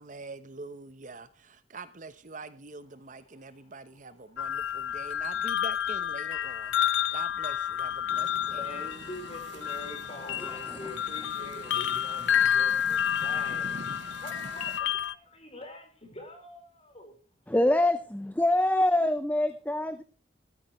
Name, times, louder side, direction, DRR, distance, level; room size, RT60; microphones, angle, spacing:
voice 1, 0.0-8.7, right 3 dB, 45° right, 1.0 m, -45 dB
sound 1, 4.4-15.1, left 9 dB, 80° left, 0.5 m, -30 dB
sound 2, 8.1-14.8, right 3 dB, 70° right, 1.2 m, -46 dB
voice 2, 8.6-13.8 14.2-17.1, left 1 dB, 30° left, 4.8 m, -45 dB
voice 3, 10.3-10.9 17.5-20.0, left 1 dB, 10° left, 0.7 m, -26 dB
13.5 x 13.5 x 3.2 m
head